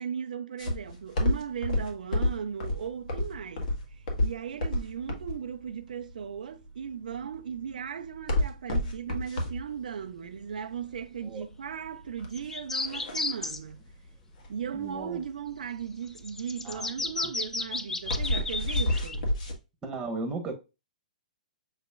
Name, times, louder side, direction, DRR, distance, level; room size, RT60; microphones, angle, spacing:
voice 1, 0.0-13.8 14.5-19.4, right 7 dB, 80° right, 0.4 m, -37 dB
sound 1, 0.6-19.5, left 1 dB, 70° left, 1.6 m, -31 dB
sound 2, 12.3-13.6 16.1-19.1, left 3 dB, 10° left, 0.4 m, -33 dB
voice 2, 14.7-15.2 16.6-17.1 19.8-20.5, right 3 dB, 15° right, 1.3 m, -36 dB
6.2 x 3.0 x 2.3 m
hypercardioid pair, 140°, 4 cm